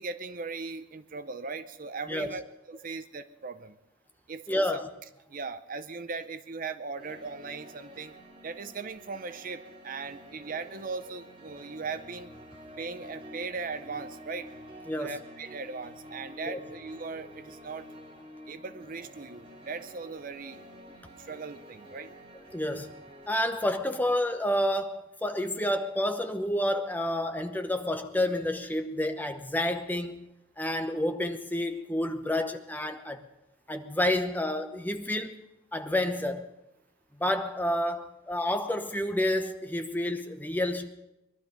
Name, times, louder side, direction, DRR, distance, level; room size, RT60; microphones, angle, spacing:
voice 1, 0.0-3.8 4.3-4.8 5.3-8.1 8.4-12.3 12.8-14.5 15.0-17.9 18.5-20.6 21.3-22.1, right 4 dB, 45° right, 12 dB, 0.6 m, -38 dB
voice 2, 4.5-4.9 14.9-15.1 16.5-16.6 22.5-22.9 23.3-30.3 30.6-33.3 33.7-35.3 35.7-36.5 37.2-40.9, left 1 dB, 10° left, 7 dB, 0.9 m, -29 dB
sound 1, 7.0-23.3, equal, 30° right, 2.8 m, -49 dB
22.0 x 12.0 x 5.3 m, 0.92 s
head